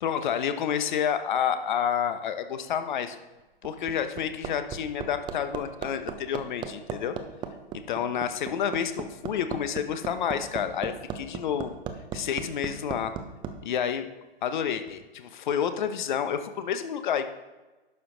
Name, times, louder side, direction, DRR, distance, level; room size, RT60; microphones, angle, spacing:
voice 1, 0.0-3.2 3.6-7.2 7.9-11.8 12.1-13.1 13.6-14.0 14.4-17.3, left 8 dB, 50° left, 10 dB, 1.0 m, -29 dB
Hammer, 3.4-13.5 14.9-15.0, right 8 dB, 15° right, 0.7 m, -36 dB
11.5 x 7.6 x 3.9 m, 1.2 s
figure-of-eight pair, 115°, 31 cm